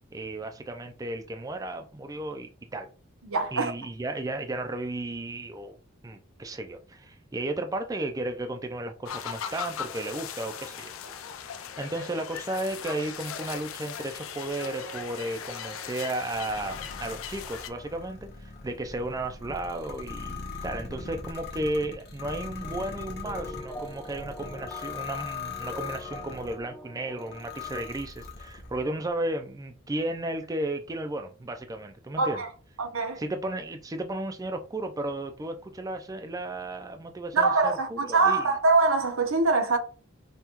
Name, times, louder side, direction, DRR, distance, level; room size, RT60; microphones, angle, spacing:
voice 1, 0.1-2.9 3.5-5.8 6.0-10.9 11.8-32.4 33.2-38.4, right 2 dB, 15° right, 0.4 m, -34 dB
voice 2, 3.2-3.7 32.2-32.5 32.8-33.2 37.3-39.8, right 3 dB, 80° right, 0.9 m, -23 dB
sound 1, 9.1-17.7, left 8 dB, 80° left, 0.5 m, -39 dB
sound 2, 14.7-19.0 19.5-19.8 22.6-28.0, equal, 10° left, 0.7 m, -46 dB
sound 3, 16.3-26.6 27.2-28.8, left 5 dB, 50° left, 1.0 m, -40 dB
5.4 x 2.3 x 3.0 m
head